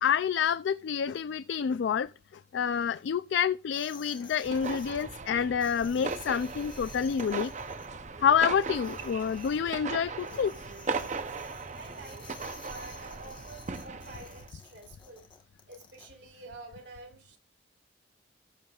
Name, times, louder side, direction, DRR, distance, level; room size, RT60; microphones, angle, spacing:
voice 1, 0.0-2.1 2.5-7.5 8.2-10.5, left 7 dB, 65° left, 0.3 m, -28 dB
sound 1, 3.7-5.0 5.6-7.9 8.4-9.6 10.2-16.1, left 5 dB, 25° left, 1.1 m, -52 dB
sound 2, 4.4-14.5, right 4 dB, 40° right, 0.6 m, -38 dB
voice 2, 11.7-15.3 15.7-17.4, right 2 dB, 60° right, 3.2 m, -48 dB
13.5 x 6.8 x 2.4 m
head